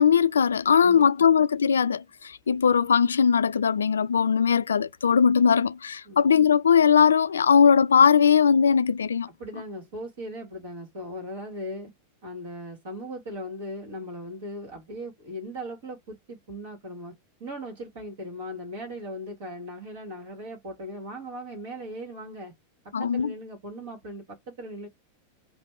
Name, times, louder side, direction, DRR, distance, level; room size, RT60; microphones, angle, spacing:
voice 1, 0.0-9.3 22.9-23.3, left 7 dB, 70° left, 0.3 m, -20 dB
voice 2, 0.8-1.3 6.0-6.2 9.4-11.9 12.2-17.1 17.4-22.5 23.0-24.9, equal, 55° right, 1.4 m, -38 dB
3.3 x 2.2 x 4.3 m
figure-of-eight pair, 90°, 0 cm